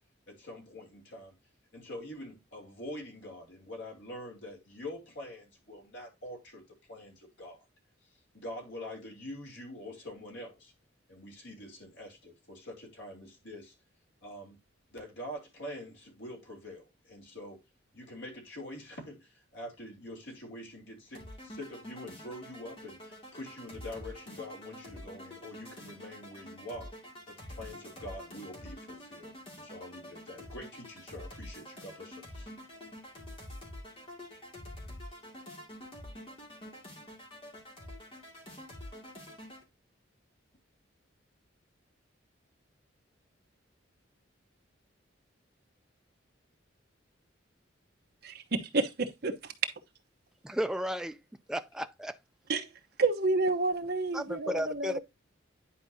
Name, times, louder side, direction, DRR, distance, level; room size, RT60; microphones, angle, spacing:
voice 1, 0.3-1.3 1.7-6.6 6.9-7.7 8.0-10.7 11.1-13.7 14.2-14.6 14.9-17.6 17.9-26.9 27.3-32.5, left 1 dB, 70° left, 3.0 m, -45 dB
sound 1, 21.1-39.6, left 1 dB, 30° left, 2.3 m, -47 dB
voice 2, 48.2-49.5 52.5-52.7 53.0-55.0, right 3 dB, 55° right, 1.0 m, -30 dB
voice 3, 50.4-51.2 51.5-52.1 54.1-55.0, equal, 5° right, 0.3 m, -33 dB
10.0 x 4.7 x 2.7 m
head